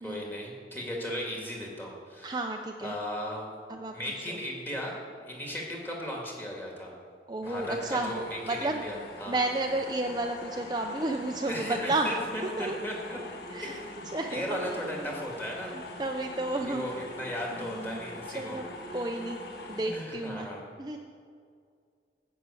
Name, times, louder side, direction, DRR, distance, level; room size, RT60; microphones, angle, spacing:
voice 1, 0.0-2.4 2.8-3.5 3.9-5.0 5.2-6.9 7.4-9.4 11.5-13.2 13.6-14.0 14.3-15.7 16.7-18.6 19.8-20.7, equal, 10° left, -2 dB, 2.0 m, -36 dB
voice 2, 2.2-3.0 3.7-3.9 4.3-4.4 7.3-8.2 8.5-8.8 9.3-12.1 12.6-12.8 13.5-13.8 14.1-14.6 15.0-15.2 15.7-17.1 17.5-18.0 18.3-18.6 18.9-19.4 19.7-20.5 20.8-21.0, right 2 dB, 25° right, 3 dB, 0.5 m, -32 dB
sound 1, 7.4-19.9, left 2 dB, 65° left, 1.5 m, -43 dB
11.0 x 6.0 x 8.3 m, 2.2 s
head